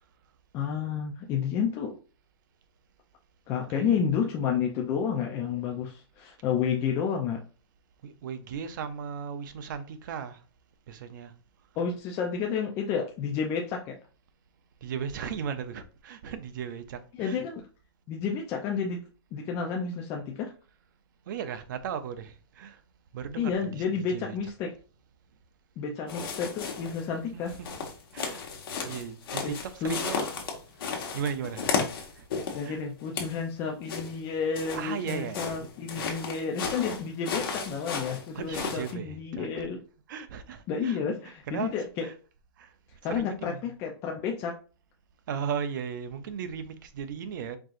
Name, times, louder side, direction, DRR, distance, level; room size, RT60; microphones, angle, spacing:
voice 1, 0.5-2.0 3.5-7.4 11.8-14.0 17.2-17.6 18.1-19.0 19.3-20.5 23.4-24.7 25.8-27.5 29.4-29.5 29.8-30.0 32.5-39.8 40.7-42.1 43.0-44.5, left 6 dB, 20° left, 0.5 m, -30 dB
voice 2, 8.0-10.4 10.9-11.3 14.8-17.4 21.3-22.8 23.1-24.4 26.0-26.1 27.3-28.4 28.8-30.2 31.1-32.2 32.6-32.8 34.7-35.7 36.0-36.1 38.3-39.7 40.1-41.0 41.5-41.8 42.0-42.1 42.6-42.7 43.0-43.6 45.3-47.6, right 7 dB, 50° right, 0.6 m, -37 dB
sound 1, 26.1-27.1 27.5-32.7 33.0-33.4 33.9-38.9, left 5 dB, 55° left, 1.3 m, -34 dB
4.6 x 3.7 x 2.5 m
hypercardioid pair, 165°, 14 cm